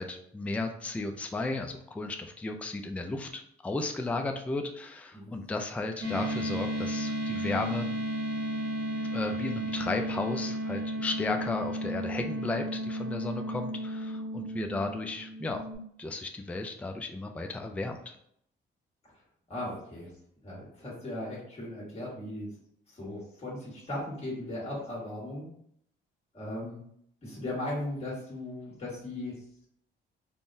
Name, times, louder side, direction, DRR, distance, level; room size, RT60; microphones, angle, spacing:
voice 1, 0.0-7.9 9.1-15.7 16.0-18.2, left 2 dB, 5° left, 5 dB, 0.3 m, -34 dB
sound 1, 6.0-15.7, equal, 70° right, 1.0 m, -33 dB
voice 2, 19.5-20.1 20.4-22.5 22.9-25.5 26.3-26.8 27.2-29.3, left 1 dB, 30° left, -5 dB, 1.4 m, -37 dB
3.7 x 2.1 x 2.5 m, 0.68 s
cardioid pair, 90°, 20 cm